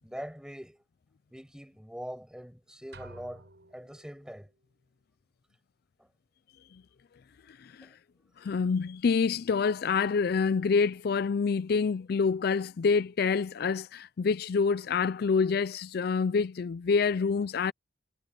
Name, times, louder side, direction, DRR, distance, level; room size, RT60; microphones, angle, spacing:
voice 1, 0.0-0.8 1.3-4.5 6.0-6.1 7.8-7.9, equal, 5° right, 6.3 m, -43 dB
sound 1, 2.9-4.4, right 2 dB, 75° right, 7.5 m, -51 dB
voice 2, 7.5-7.9 8.4-17.7, left 5 dB, 60° left, 0.4 m, -27 dB
head